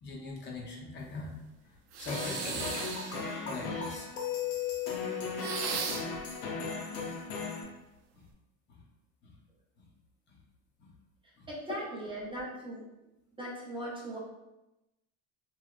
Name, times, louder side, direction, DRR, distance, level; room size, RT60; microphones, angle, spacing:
voice 1, 0.0-2.8 3.5-4.1 7.6-7.8 8.1-8.3 8.7-8.8 9.2-9.3 9.8-9.9 10.3-10.4 10.8-10.9 11.4-11.5, left 3 dB, 35° left, -2 dB, 0.6 m, -42 dB
sound 1, 1.9-3.3 5.4-6.2, right 6 dB, 65° right, 0.5 m, -36 dB
sound 2, 2.1-7.6, left 6 dB, 85° left, 0.6 m, -36 dB
voice 2, 11.5-12.8 13.4-14.2, right 1 dB, 15° right, -5 dB, 0.5 m, -39 dB
3.0 x 2.0 x 2.3 m, 0.94 s
supercardioid pair, 110°, 31 cm